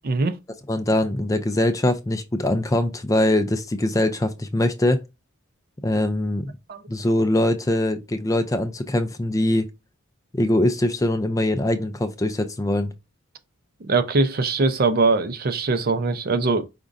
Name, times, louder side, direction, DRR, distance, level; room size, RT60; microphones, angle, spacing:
voice 1, 0.0-0.4 6.7-6.8 13.9-16.7, right 3 dB, 45° right, 0.5 m, -21 dB
voice 2, 0.7-5.0 5.8-6.5 6.9-9.7 10.3-12.9, left 1 dB, 15° left, 0.4 m, -22 dB
5.1 x 3.6 x 2.5 m
head